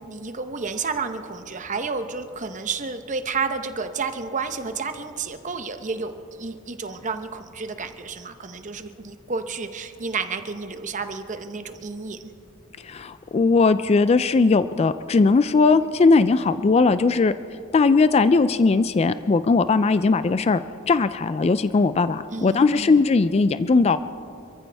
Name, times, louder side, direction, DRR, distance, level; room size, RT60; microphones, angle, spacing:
voice 1, 0.0-12.3 22.3-23.1, right 4 dB, 35° right, 8 dB, 0.9 m, -31 dB
voice 2, 12.8-17.3 17.7-24.0, left 4 dB, 30° left, 12 dB, 0.3 m, -19 dB
27.0 x 14.5 x 3.4 m, 2.7 s
head